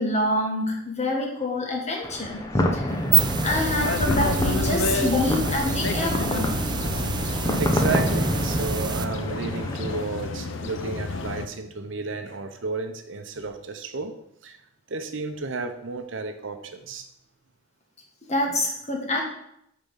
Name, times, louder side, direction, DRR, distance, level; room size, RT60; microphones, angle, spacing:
voice 1, 0.0-2.4 2.7-3.0 3.4-6.5 18.3-19.2, left 1 dB, 35° left, 0 dB, 1.6 m, -26 dB
sound 1, 2.0-10.1, left 1 dB, 20° left, 0.7 m, -28 dB
sound 2, 2.9-9.0, right 6 dB, 20° right, 0.3 m, -28 dB
sound 3, 3.5-11.5, left 3 dB, 70° left, 0.6 m, -30 dB
voice 2, 7.6-14.1 14.4-14.6 14.9-17.1, right 4 dB, 70° right, 7 dB, 0.8 m, -32 dB
8.5 x 3.7 x 5.6 m, 0.75 s
head